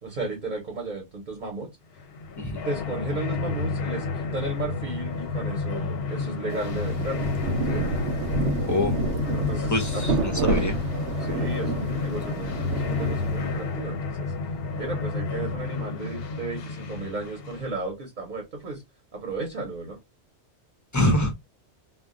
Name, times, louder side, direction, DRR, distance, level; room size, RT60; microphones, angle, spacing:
voice 1, 0.0-1.7 2.6-7.4 7.7-7.9 9.3-10.0 11.2-14.3 14.8-18.8 19.1-20.0, right 3 dB, 45° right, 0.9 m, -34 dB
sound 1, 2.0-17.7, left 4 dB, 65° left, 0.7 m, -31 dB
Rain, 6.5-13.7, right 2 dB, 90° right, 1.0 m, -29 dB
voice 2, 9.7-10.8 20.9-21.5, left 1 dB, 25° left, 0.4 m, -25 dB
2.4 x 2.1 x 3.6 m
omnidirectional pair, 1.2 m